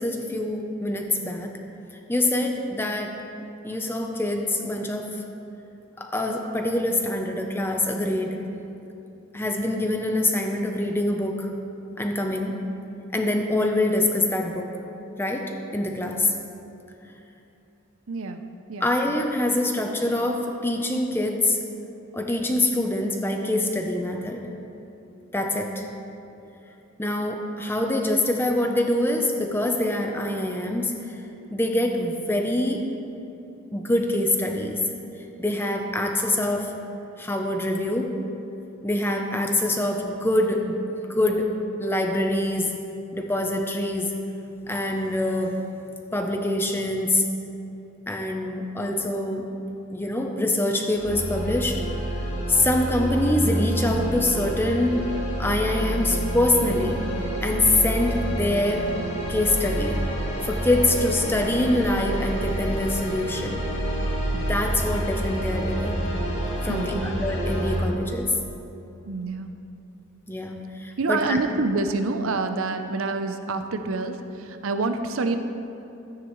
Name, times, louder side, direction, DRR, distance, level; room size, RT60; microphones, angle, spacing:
voice 1, 0.0-1.5 2.1-3.1 3.6-5.1 6.0-8.4 9.3-11.5 12.0-12.6 13.1-14.7 15.2-16.3 18.8-21.6 22.1-24.5 25.3-25.8 27.0-30.9 31.5-32.8 33.7-34.8 35.4-36.7 37.2-38.2 38.8-40.8 41.1-41.5 41.8-42.7 43.1-44.1 44.7-45.6 46.1-47.3 48.1-49.5 49.9-51.8 52.5-55.0 55.4-57.0 57.4-58.9 59.3-60.0 60.4-63.7 64.3-66.0 66.6-68.3 70.3-71.4, left 1 dB, 10° left, 3 dB, 0.6 m, -25 dB
voice 2, 18.1-18.4 18.7-18.9 66.7-66.9 69.0-69.5 71.0-75.4, right 3 dB, 75° right, 7 dB, 0.6 m, -27 dB
sound 1, 51.0-67.8, right 1 dB, 55° left, 2.3 m, -28 dB
13.0 x 9.6 x 3.1 m, 2.9 s
head